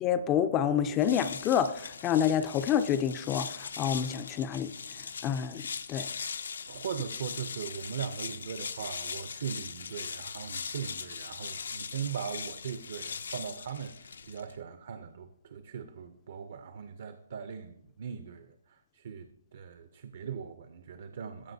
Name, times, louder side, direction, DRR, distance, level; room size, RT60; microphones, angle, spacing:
voice 1, 0.0-4.7 5.2-5.6 5.9-6.1, left 9 dB, 20° left, 11 dB, 0.3 m, -28 dB
sound 1, 0.9-14.6, left 6 dB, 80° left, 0.5 m, -40 dB
voice 2, 6.7-18.5 18.9-21.5, right 7 dB, 55° right, 9 dB, 0.5 m, -39 dB
13.5 x 4.9 x 2.7 m, 0.71 s
hypercardioid pair, 160°, 0 cm